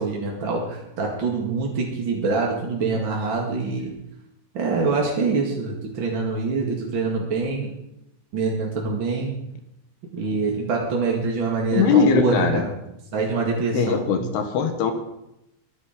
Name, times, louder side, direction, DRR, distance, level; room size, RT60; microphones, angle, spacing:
voice 1, 0.0-3.9 4.5-7.7 8.3-9.4 10.1-12.6 13.1-14.1, right 4 dB, 40° right, -1 dB, 1.8 m, -25 dB
voice 2, 11.7-12.6 13.7-14.9, left 6 dB, 70° left, 7 dB, 3.2 m, -20 dB
24.0 x 10.5 x 5.2 m, 0.87 s
omnidirectional pair, 5.2 m